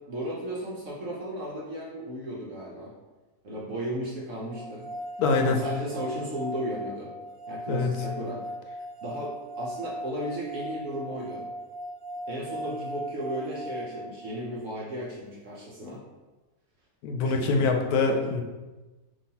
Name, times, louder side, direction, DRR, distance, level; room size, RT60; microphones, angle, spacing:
voice 1, 0.1-2.9 3.4-4.9 5.5-7.1 7.5-8.4 9.0-11.4 12.3-16.0 17.1-17.7 18.1-18.4, equal, 60° right, -5 dB, 1.0 m, -35 dB
sound 1, 4.5-14.6, right 1 dB, 35° right, 0.3 m, -38 dB
voice 2, 5.2-5.6 7.7-8.0 17.0-18.4, left 3 dB, 80° left, 4 dB, 1.1 m, -24 dB
5.3 x 2.9 x 2.8 m, 1.2 s
omnidirectional pair, 1.6 m